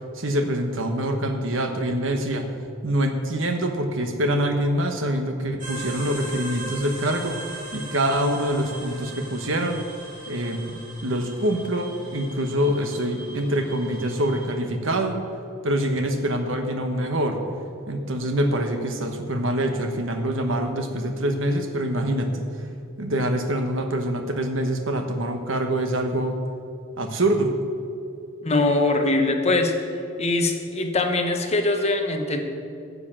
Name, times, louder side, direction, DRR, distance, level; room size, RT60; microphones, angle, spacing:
voice 1, 0.1-2.5 2.8-7.4 7.7-9.8 10.3-15.2 15.6-17.4 17.9-22.5 23.0-26.4 27.0-27.5, right 1 dB, 65° right, 6 dB, 1.2 m, -25 dB
sound 1, 5.6-14.5, right 2 dB, 40° right, 3.0 m, -39 dB
voice 2, 28.4-29.7 30.2-32.4, left 2 dB, 35° left, 4 dB, 1.0 m, -22 dB
10.0 x 6.7 x 7.5 m, 2.7 s
head